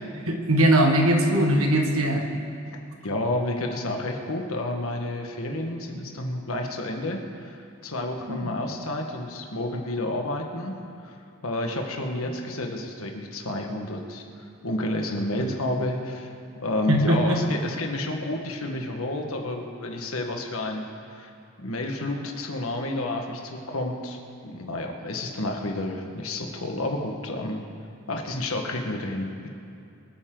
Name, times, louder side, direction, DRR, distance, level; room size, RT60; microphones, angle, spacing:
voice 1, 0.2-2.3 5.5-5.6 8.3-8.5 15.4-15.5 16.9-17.4, right 1 dB, 90° right, 2 dB, 1.8 m, -21 dB
voice 2, 3.0-11.2 11.4-14.2 14.6-16.3 16.6-21.3 21.6-24.2 24.4-27.6 28.1-29.5, left 1 dB, 90° left, 2 dB, 1.5 m, -30 dB
25.5 x 9.3 x 3.9 m, 2.6 s
head